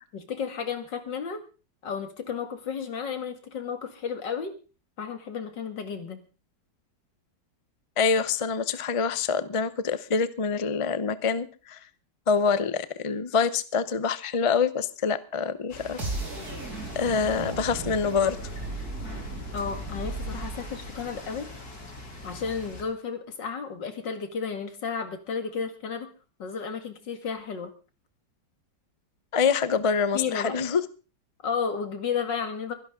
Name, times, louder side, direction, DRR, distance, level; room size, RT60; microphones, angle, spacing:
voice 1, 0.1-1.4 1.8-4.5 5.0-6.2 19.5-21.5 22.2-26.1 26.4-27.7 30.1-30.6 31.4-32.7, left 6 dB, 80° left, 7 dB, 2.7 m, -32 dB
voice 2, 8.0-11.8 12.3-16.0 16.9-18.4 29.3-30.8, left 5 dB, 35° left, 14 dB, 0.5 m, -25 dB
sound 1, 15.7-22.8, left 2 dB, 55° left, 3.6 m, -43 dB
sound 2, 16.0-22.0, right 2 dB, 60° right, 4.9 m, -36 dB
23.0 x 11.5 x 3.7 m, 0.34 s
omnidirectional pair, 1.9 m